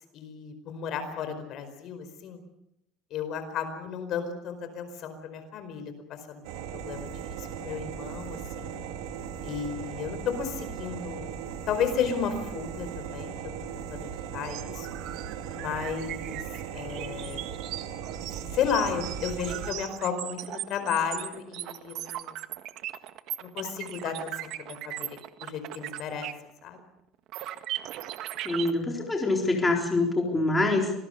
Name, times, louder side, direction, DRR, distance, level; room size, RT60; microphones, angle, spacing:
voice 1, 0.1-2.4 3.1-7.1 7.4-8.8 9.4-11.3 11.7-14.9 15.5-17.5 18.5-22.3 23.4-26.3 26.6-26.8, left 7 dB, 50° left, 9 dB, 4.7 m, -33 dB
sound 1, 6.4-19.7, right 8 dB, 90° right, 3.4 m, -38 dB
sound 2, 14.4-26.5 26.8-26.9 27.3-28.7, right 13 dB, 60° right, 1.6 m, -38 dB
voice 2, 28.4-30.9, left 2 dB, 10° left, 1 dB, 4.0 m, -25 dB
26.5 x 20.0 x 6.7 m, 0.80 s
cardioid pair, 140°, 0 cm